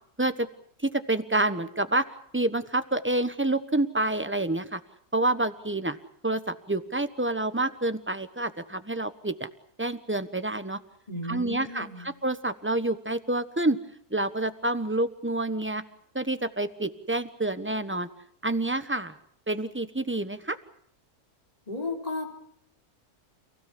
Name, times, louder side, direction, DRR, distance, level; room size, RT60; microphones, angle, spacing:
voice 1, 0.8-2.0 2.3-4.8 5.1-6.0 6.2-9.5 9.8-10.8 11.3-13.8 14.1-15.8 16.1-18.1 18.4-19.1 19.5-20.6, right 2 dB, 10° right, 11 dB, 1.0 m, -28 dB
voice 2, 11.1-12.1 21.7-22.3, left 2 dB, 25° left, 0 dB, 3.7 m, -34 dB
30.0 x 17.0 x 8.5 m, 0.67 s
omnidirectional pair, 1.6 m